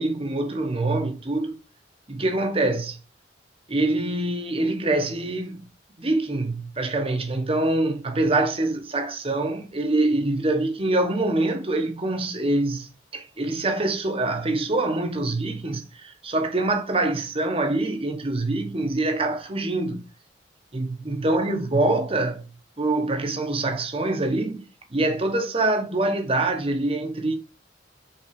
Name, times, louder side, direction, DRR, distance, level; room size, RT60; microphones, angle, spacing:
voice 1, 0.0-1.5 2.1-3.0 3.7-5.6 6.0-12.9 13.1-20.0 20.7-22.4 22.8-24.6 24.9-27.4, right 2 dB, 35° right, 1.1 m, -25 dB
5.8 x 4.0 x 4.8 m
head